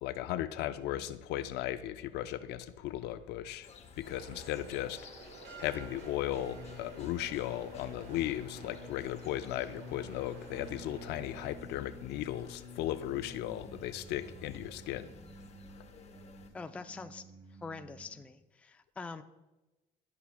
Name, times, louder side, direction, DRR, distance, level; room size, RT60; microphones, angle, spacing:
voice 1, 0.0-3.7 4.0-5.1 5.6-15.1, left 13 dB, 85° left, 13 dB, 0.4 m, -36 dB
sound 1, 3.6-16.5, left 5 dB, 40° left, 0.7 m, -55 dB
sound 2, 4.0-11.5, right 4 dB, 85° right, 1.2 m, -52 dB
sound 3, 6.4-18.3, left 2 dB, 45° right, 1.8 m, -51 dB
voice 2, 16.5-17.3 17.6-19.2, left 4 dB, 10° left, 8 dB, 0.3 m, -44 dB
12.5 x 5.7 x 2.2 m, 1.0 s
cardioid pair, 110°, 17 cm